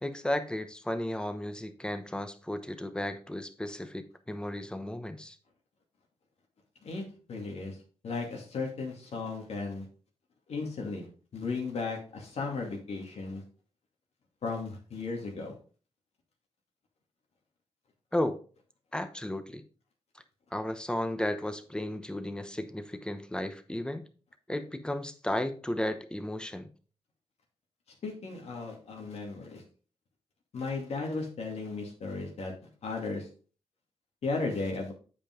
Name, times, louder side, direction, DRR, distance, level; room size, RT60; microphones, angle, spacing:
voice 1, 0.0-5.4 18.1-18.4 18.9-19.6 20.5-24.0 24.5-26.7, left 1 dB, 10° left, 9 dB, 0.9 m, -34 dB
voice 2, 7.3-7.8 8.0-9.8 10.5-11.1 11.3-13.4 14.4-15.5 28.0-29.6 30.5-32.5 32.8-33.3 34.2-34.9, left 3 dB, 75° left, 0 dB, 2.3 m, -35 dB
8.6 x 5.2 x 3.7 m, 0.39 s
cardioid pair, 90°, 11 cm